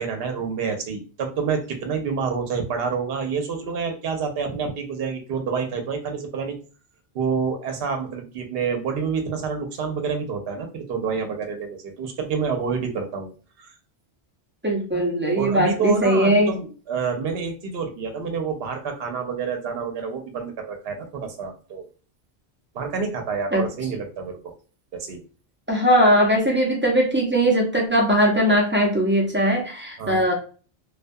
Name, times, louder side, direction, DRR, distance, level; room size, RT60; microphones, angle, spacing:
voice 1, 0.0-6.5 7.1-13.3 13.6-13.7 14.9-15.0 15.3-21.9 22.7-24.5 24.9-25.2 30.0-30.2, right 5 dB, 70° right, 4 dB, 0.8 m, -28 dB
voice 2, 14.6-16.5 23.5-23.7 25.7-30.3, equal, 15° right, -2 dB, 0.4 m, -20 dB
2.3 x 2.2 x 2.5 m, 0.37 s
omnidirectional pair, 1.1 m